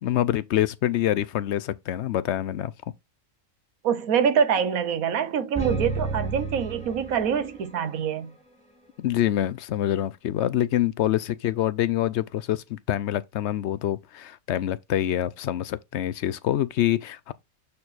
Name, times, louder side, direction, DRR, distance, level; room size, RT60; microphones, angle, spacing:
voice 1, 0.0-2.7 9.0-17.3, left 12 dB, 65° left, 0.8 m, -26 dB
voice 2, 3.8-8.3, right 7 dB, 90° right, 1.4 m, -25 dB
sound 1, 5.5-7.7, right 3 dB, 5° left, 1.7 m, -31 dB
8.5 x 4.6 x 4.1 m
omnidirectional pair, 1.4 m